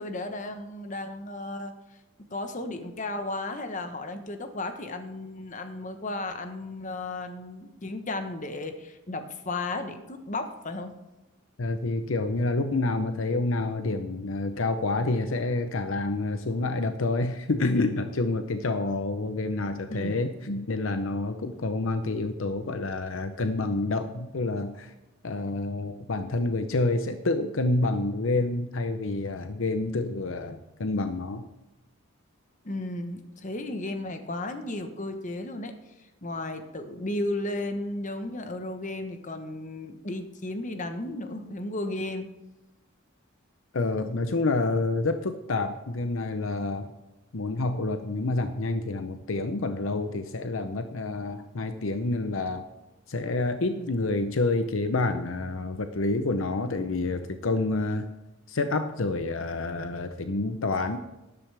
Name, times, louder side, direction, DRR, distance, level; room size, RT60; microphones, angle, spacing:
voice 1, 0.0-1.8 2.3-10.9 19.9-20.2 32.6-35.7 36.2-42.3 53.8-53.9, left 2 dB, 35° left, 7 dB, 1.1 m, -34 dB
voice 2, 11.6-24.9 25.2-31.4 43.7-46.9 47.3-52.6 53.1-58.1 58.5-61.0, left 2 dB, 65° left, 8 dB, 0.7 m, -28 dB
13.0 x 10.5 x 3.4 m, 1.0 s
head